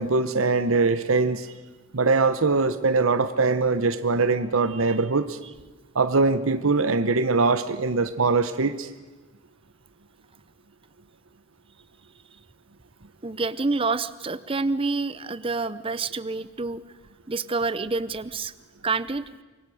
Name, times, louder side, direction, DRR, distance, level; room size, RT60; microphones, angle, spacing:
voice 1, 0.0-1.5 1.9-5.4 5.9-8.9, right 3 dB, 85° right, 11 dB, 1.0 m, -22 dB
voice 2, 13.2-16.8 17.3-18.5 18.8-19.4, right 3 dB, 25° right, 15 dB, 0.7 m, -28 dB
25.0 x 23.0 x 6.4 m, 1.2 s
head